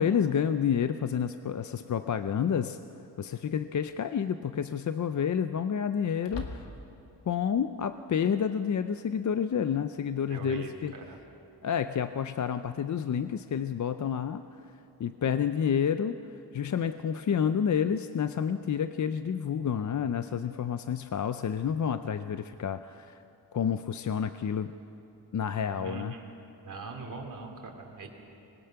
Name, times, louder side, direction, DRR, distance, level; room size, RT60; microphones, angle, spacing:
voice 1, 0.0-2.8 3.2-6.6 7.3-10.9 11.6-14.4 15.0-16.2 16.5-23.2 23.5-24.7 25.3-26.1, left 7 dB, 45° left, 10 dB, 0.5 m, -29 dB
sound 1, 1.6-1.7 3.5-3.9 4.3-4.4 6.2-7.1, left 3 dB, 75° left, 1.9 m, -41 dB
voice 2, 10.3-11.2 25.8-26.3 26.6-28.1, right 3 dB, 45° right, 1 dB, 2.7 m, -41 dB
25.5 x 20.5 x 5.8 m, 2.8 s
wide cardioid pair, 180°, 43 cm